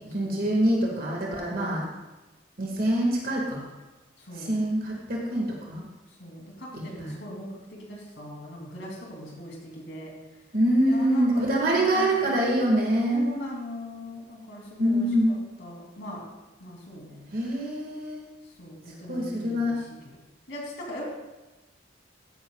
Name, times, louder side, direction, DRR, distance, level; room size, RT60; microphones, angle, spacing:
voice 1, 0.0-1.9 2.6-3.6 4.3-5.8 6.7-7.1 10.5-13.3 14.8-15.4 17.3-18.2 19.1-19.8, right 1 dB, 50° right, -2 dB, 1.9 m, -25 dB
voice 2, 4.2-4.5 6.2-10.1 10.8-12.4 13.1-16.2 16.6-17.3 18.6-19.8 20.5-21.1, left 1 dB, 70° left, -2 dB, 3.0 m, -39 dB
14.0 x 10.0 x 2.4 m, 1.1 s
head